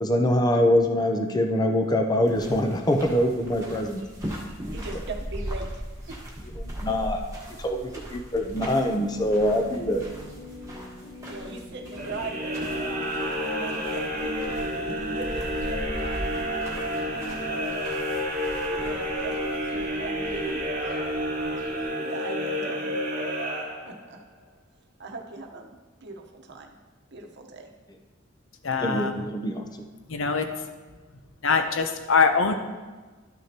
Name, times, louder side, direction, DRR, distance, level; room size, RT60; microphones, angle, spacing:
voice 1, 0.0-4.0 6.5-7.2 7.6-10.0 28.8-29.7, left 1 dB, 20° left, 4 dB, 0.6 m, -24 dB
sound 1, 2.2-21.8, equal, 15° right, 1.4 m, -39 dB
voice 2, 4.7-6.2 8.6-8.7 11.3-14.8 15.1-16.3 18.5-20.6 22.0-23.0 23.9-24.2 25.0-26.7 27.1-27.7, right 3 dB, 55° right, 2 dB, 1.0 m, -39 dB
sound 2, 8.9-17.8, left 2 dB, 50° left, 2.1 m, -42 dB
sound 3, 12.0-24.2, equal, 40° right, 1.3 m, -30 dB
voice 3, 28.6-29.1 30.1-30.5 31.4-32.5, left 5 dB, 70° left, 7 dB, 0.7 m, -23 dB
12.5 x 6.2 x 2.9 m, 1.3 s
head